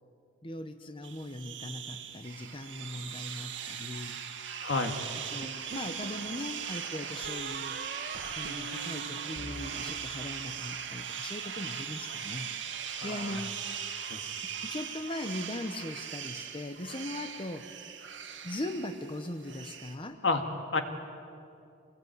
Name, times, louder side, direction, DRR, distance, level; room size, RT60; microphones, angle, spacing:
voice 1, 0.4-4.2 5.3-7.8 8.3-12.5 13.0-13.6 14.4-17.7 18.4-20.2, left 1 dB, 30° left, 7 dB, 1.0 m, -39 dB
sound 1, 1.0-19.9, right 8 dB, 75° right, 1.9 m, -40 dB
voice 2, 4.6-4.9 13.0-13.4 14.1-14.2 20.2-20.4 20.7-20.8, left 3 dB, 75° left, 5 dB, 2.1 m, -29 dB
sound 2, 5.4-6.3 7.2-10.7, right 4 dB, 50° right, 1.2 m, -43 dB
26.5 x 19.5 x 9.4 m, 2.6 s
head